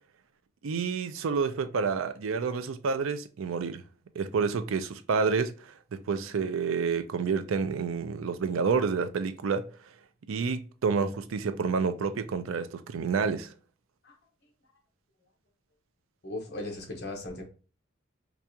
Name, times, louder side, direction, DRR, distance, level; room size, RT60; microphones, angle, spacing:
voice 1, 0.6-3.8 4.2-9.7 10.3-13.5, right 5 dB, 85° right, 0.4 m, -29 dB
voice 2, 16.2-17.4, left 2 dB, 55° left, 1.1 m, -37 dB
4.6 x 2.4 x 2.8 m
head